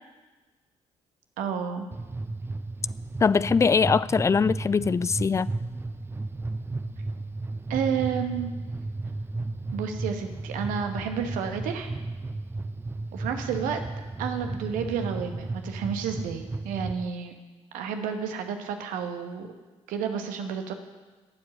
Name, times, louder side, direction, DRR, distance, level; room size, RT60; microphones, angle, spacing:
voice 1, 1.4-1.8 7.7-8.5 9.7-11.9 13.1-13.8 14.2-17.3 17.7-19.5 19.9-20.7, right 7 dB, 60° right, 1.3 m, -30 dB
sound 1, 1.9-17.0, right 2 dB, 15° right, 0.7 m, -34 dB
voice 2, 3.2-5.5, left 5 dB, 20° left, 0.4 m, -22 dB
19.5 x 7.8 x 5.7 m
figure-of-eight pair, 45°, 15 cm